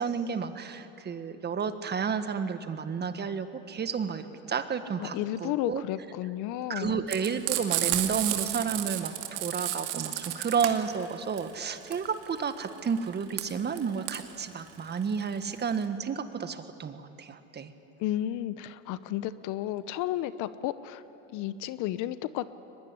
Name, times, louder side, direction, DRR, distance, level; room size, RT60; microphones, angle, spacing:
voice 1, 0.0-5.8 6.7-17.7, right 6 dB, 30° right, 10 dB, 1.6 m, -31 dB
voice 2, 5.0-7.0 18.0-21.0 21.3-22.5, left 13 dB, 60° left, 14 dB, 1.0 m, -32 dB
Frying (food), 7.1-15.8, right 14 dB, 75° right, 2.4 m, -32 dB
23.0 x 20.5 x 9.9 m, 2.9 s
supercardioid pair, 100°, 35 cm